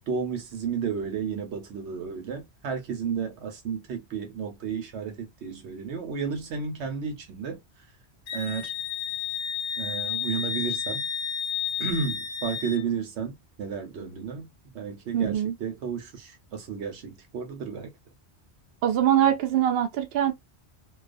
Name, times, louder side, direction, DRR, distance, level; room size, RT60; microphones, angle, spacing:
voice 1, 0.1-7.6 8.3-8.7 9.8-11.1 11.8-14.5 14.7-17.9, right 6 dB, 85° right, 1.0 m, -32 dB
Wind instrument woodwind instrument, 8.3-12.8, left 7 dB, 70° left, 0.8 m, -31 dB
voice 2, 15.1-15.5 18.8-20.3, right 10 dB, 65° right, 0.7 m, -23 dB
2.3 x 2.3 x 2.3 m
omnidirectional pair, 1.1 m